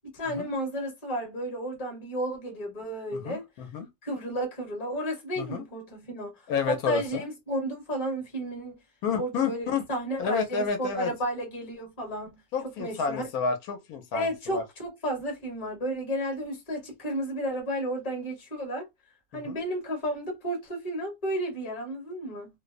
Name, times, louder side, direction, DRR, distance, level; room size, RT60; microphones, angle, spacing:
voice 1, 0.1-3.4 4.0-6.3 6.7-8.8 9.1-12.4 12.8-13.2 14.1-18.8 19.3-22.5, right 1 dB, 30° left, 0.9 m, -32 dB
voice 2, 3.1-3.9 5.4-5.6 6.5-7.3 9.0-9.8 10.2-11.1 12.5-14.6 19.3-19.6, left 6 dB, 85° left, 1.1 m, -30 dB
2.6 x 2.0 x 2.4 m
omnidirectional pair, 1.6 m